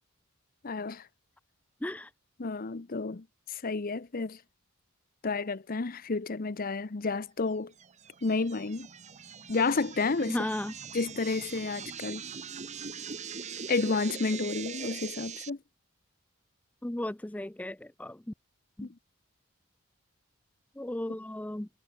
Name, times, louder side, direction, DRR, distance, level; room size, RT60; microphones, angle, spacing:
voice 1, 0.6-1.1 2.4-4.4 5.2-7.7 8.2-8.9 9.5-10.4 10.9-12.2 13.7-15.6 18.8-18.9, left 3 dB, 40° left, 0.7 m, -31 dB
voice 2, 1.8-2.1 10.3-10.7 16.8-18.3 18.8-18.9 20.8-21.7, left 1 dB, 5° left, 0.4 m, -35 dB
sound 1, 7.8-15.5, right 6 dB, 35° right, 1.1 m, -42 dB
head